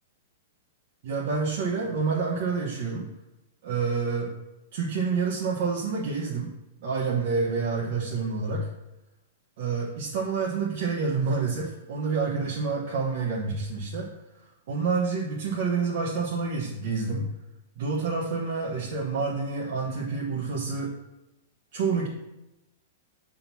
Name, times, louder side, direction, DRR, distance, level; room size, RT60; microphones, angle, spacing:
voice 1, 1.0-3.1 3.6-4.3 4.7-6.5 6.8-8.7 9.6-14.1 14.7-17.3 17.8-20.9 21.7-22.1, right 4 dB, 55° right, -4 dB, 1.2 m, -28 dB
5.7 x 3.8 x 6.0 m, 0.94 s
hypercardioid pair, 155°, 0 cm